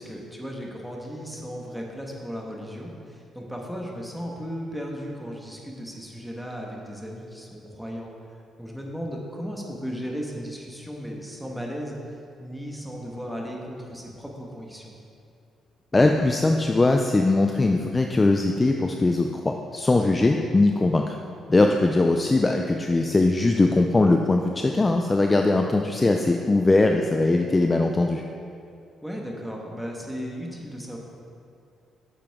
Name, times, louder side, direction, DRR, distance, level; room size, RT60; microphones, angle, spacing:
voice 1, 0.0-8.1 8.6-12.0 12.4-14.9 20.2-20.4 25.5-25.7 29.0-31.0, equal, ahead, -1 dB, 1.5 m, -36 dB
voice 2, 15.9-21.1 21.5-28.2, left 2 dB, 20° left, 3 dB, 0.4 m, -21 dB
9.3 x 7.3 x 3.7 m, 2.5 s
cardioid pair, 90°, 0 cm